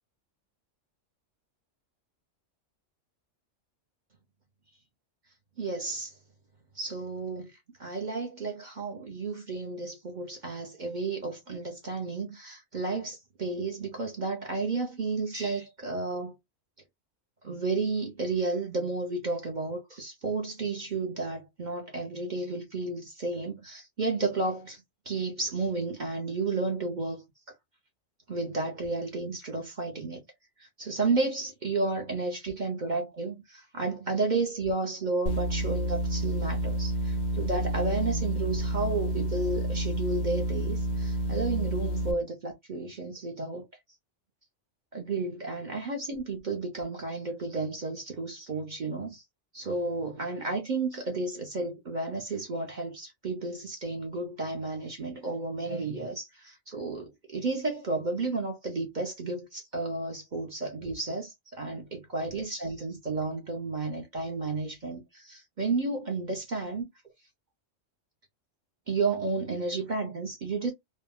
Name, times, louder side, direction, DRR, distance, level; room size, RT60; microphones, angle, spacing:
voice 1, 5.6-6.2 6.7-7.5 7.8-16.3 17.4-27.2 28.3-30.2 30.6-43.7 44.9-49.2 49.5-66.9 68.9-70.7, right 3 dB, 45° right, 0.7 m, -32 dB
sound 1, 35.3-42.1, right 1 dB, 90° left, 1.1 m, -29 dB
3.4 x 2.2 x 2.2 m
omnidirectional pair, 1.3 m